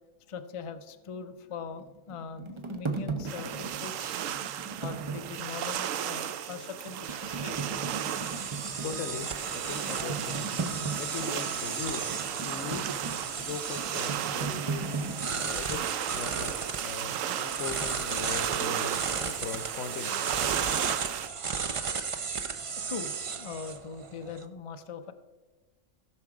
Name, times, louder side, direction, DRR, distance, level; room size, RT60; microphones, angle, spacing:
voice 1, 0.3-4.4 4.8-7.6 22.9-25.1, left 5 dB, 40° left, 9 dB, 0.5 m, -41 dB
sound 1, 1.8-5.8 6.3-6.4 6.9-15.3, right 4 dB, 25° right, 0.8 m, -37 dB
sound 2, 3.3-21.3, right 10 dB, 90° right, 1.0 m, -35 dB
sound 3, 7.3-24.4, right 5 dB, 50° right, 0.4 m, -35 dB
voice 2, 8.8-10.6 11.0-12.1 12.4-12.8 13.4-15.1 15.3-15.8 16.1-16.6 16.8-20.2, left 6 dB, 90° left, 11 dB, 1.2 m, -39 dB
16.0 x 6.1 x 4.8 m, 1.2 s
omnidirectional pair, 1.3 m